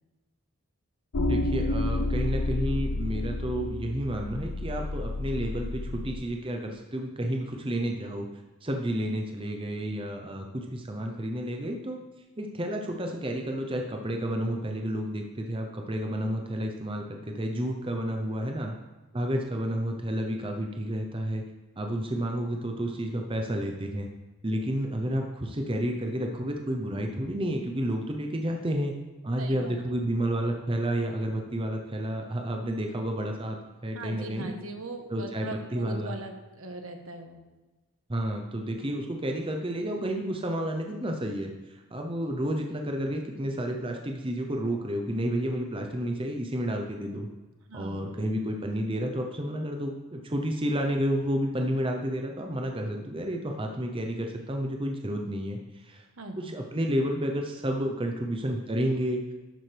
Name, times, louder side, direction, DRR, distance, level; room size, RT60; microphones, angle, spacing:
sound 1, 1.1-6.2, left 2 dB, 65° left, 0.7 m, -30 dB
voice 1, 1.3-8.3 8.6-12.0 12.4-18.7 19.1-21.4 21.8-24.1 24.4-28.9 29.2-34.5 35.1-36.2 38.1-47.3 47.7-56.1 56.4-59.2, right 1 dB, 25° right, 2 dB, 0.8 m, -31 dB
voice 2, 29.4-29.8 33.9-37.4 47.7-48.1 56.2-56.5, right 2 dB, 70° right, 4 dB, 1.3 m, -40 dB
12.0 x 8.8 x 3.4 m, 1.2 s
head